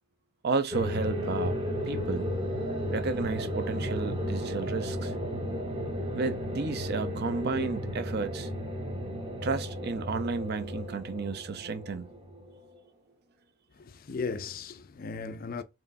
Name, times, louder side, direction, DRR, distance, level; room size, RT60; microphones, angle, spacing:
voice 1, 0.4-1.6 1.9-2.3 2.9-5.1 6.1-8.5 9.4-12.1, right 4 dB, 50° right, 0.5 m, -32 dB
sound 1, 0.7-12.8, equal, 25° right, 0.8 m, -34 dB
voice 2, 13.7-15.6, left 4 dB, 45° left, 0.4 m, -36 dB
4.4 x 3.1 x 2.6 m
head